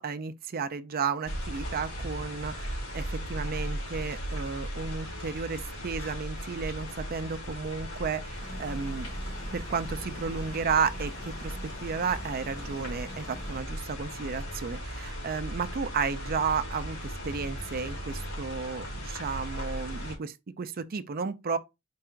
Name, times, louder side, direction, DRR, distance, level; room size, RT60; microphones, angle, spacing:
voice 1, 0.0-9.1 9.5-21.6, right 5 dB, 40° right, 0.5 m, -33 dB
sound 1, 1.2-20.2, equal, 80° left, 2.9 m, -37 dB
sound 2, 8.4-13.6, left 1 dB, 15° left, 0.6 m, -47 dB
4.7 x 2.5 x 4.4 m
head